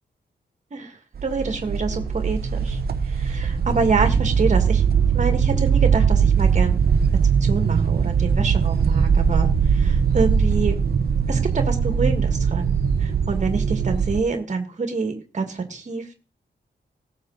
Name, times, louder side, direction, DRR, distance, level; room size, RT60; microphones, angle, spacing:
voice 1, 0.7-2.8 3.1-4.9 5.1-6.8 7.4-10.8 11.3-16.1, right 4 dB, 40° right, 7 dB, 1.8 m, -26 dB
sound 1, 1.2-14.2, right 6 dB, 55° right, 0.8 m, -20 dB
sound 2, 1.8-14.3, left 2 dB, 30° left, 5.6 m, -41 dB
17.0 x 6.9 x 4.0 m, 0.35 s
wide cardioid pair, 180°, 19 cm